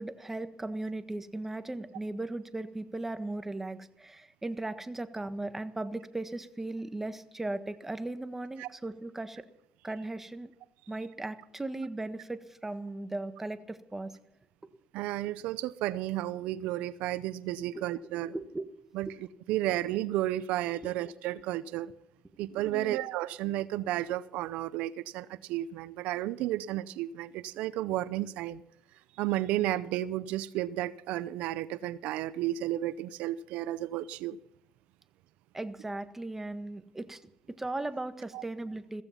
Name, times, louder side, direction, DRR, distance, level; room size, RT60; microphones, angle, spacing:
voice 1, 0.0-9.4 9.8-10.5 10.9-14.1 17.7-17.8 18.3-18.7 19.1-19.2 20.8-20.9 22.7-23.0 35.5-37.2 37.5-39.0, right 2 dB, 15° right, 1.5 m, -37 dB
voice 2, 14.9-18.3 18.9-21.9 22.4-28.6 29.2-34.4 38.3-38.4, right 14 dB, 85° right, 0.6 m, -32 dB
15.5 x 15.0 x 5.8 m
cardioid pair, 90°, 2 cm